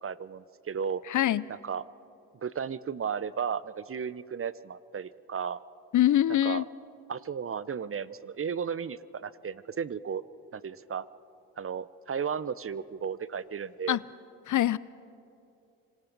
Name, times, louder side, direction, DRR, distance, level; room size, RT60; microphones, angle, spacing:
voice 1, 0.0-1.0 1.5-1.8 2.4-5.6 6.3-6.7 7.1-10.2 10.5-11.1 11.6-14.0, right 7 dB, 35° right, 18 dB, 0.7 m, -34 dB
voice 2, 1.1-1.4 5.9-6.6 13.9-14.0 14.5-14.8, left 12 dB, 50° left, 20 dB, 0.5 m, -24 dB
26.0 x 26.0 x 4.0 m, 2.7 s
supercardioid pair, 50°, 39 cm